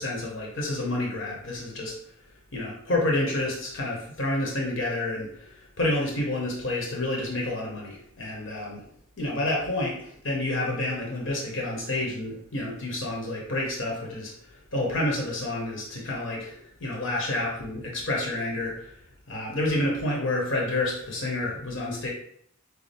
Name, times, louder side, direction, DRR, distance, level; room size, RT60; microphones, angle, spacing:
voice 1, 0.0-1.9 2.5-8.9 9.2-19.0 19.3-22.1, left 1 dB, 65° left, -2 dB, 1.1 m, -29 dB
6.5 x 2.2 x 3.5 m, 0.68 s
head